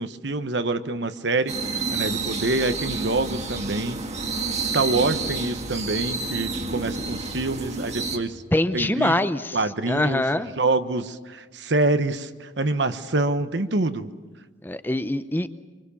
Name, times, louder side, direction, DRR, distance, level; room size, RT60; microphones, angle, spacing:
voice 1, 0.0-4.0 4.7-8.4 8.7-9.2 9.5-10.2 10.6-14.1, right 2 dB, 65° right, 10 dB, 1.1 m, -26 dB
sound 1, 1.5-8.2, right 4 dB, 35° right, 1.9 m, -29 dB
voice 2, 8.5-9.6 9.9-10.5 14.6-15.5, left 1 dB, 10° left, 11 dB, 0.7 m, -23 dB
26.0 x 24.5 x 7.2 m, 1.3 s
head